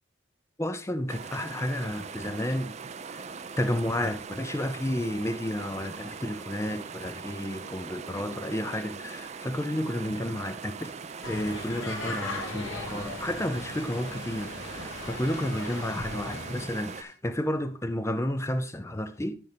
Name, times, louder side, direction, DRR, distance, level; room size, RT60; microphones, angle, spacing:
voice 1, 0.6-2.8 3.1-11.0 11.3-19.4, left 1 dB, 15° left, 0.6 m, -31 dB
sound 1, 1.1-17.0, right 5 dB, 35° right, 0.5 m, -41 dB
sound 2, 11.2-16.7, left 2 dB, 85° left, 1.8 m, -38 dB
sound 3, 11.2-17.1, left 2 dB, 65° left, 3.7 m, -50 dB
10.5 x 6.3 x 3.4 m
head